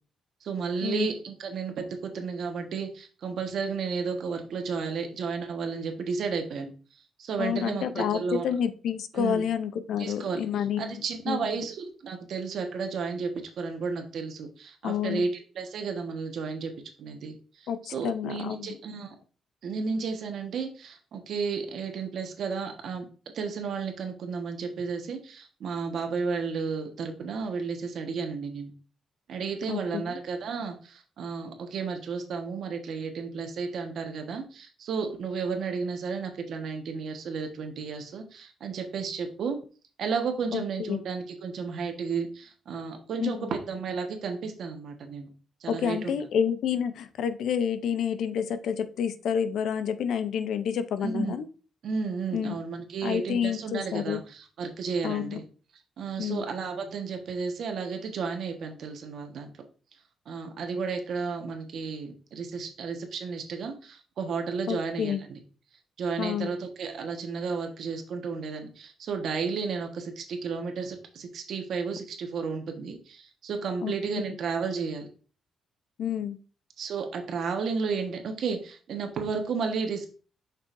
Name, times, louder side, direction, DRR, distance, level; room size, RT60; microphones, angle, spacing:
voice 1, 0.4-6.7 7.2-8.5 9.1-9.4 10.0-10.4 10.8-13.3 13.6-16.7 17.0-19.1 19.6-23.1 23.3-28.7 29.3-39.6 40.0-45.3 45.6-46.2 51.0-51.3 51.8-55.4 56.0-59.5 60.3-65.4 66.0-75.1 76.8-80.1, right 5 dB, 65° right, 5 dB, 1.3 m, -33 dB
voice 2, 7.4-11.5 14.8-15.3 17.7-18.7 29.7-30.2 40.5-41.0 43.2-43.5 45.7-51.5 52.3-52.6 53.0-54.2 55.0-55.4 56.2-56.4 64.7-65.2 66.2-66.5 73.8-74.2 76.0-76.4, left 8 dB, 75° left, 12 dB, 0.6 m, -29 dB
6.8 x 5.4 x 2.6 m, 0.38 s
cardioid pair, 100°, 0 cm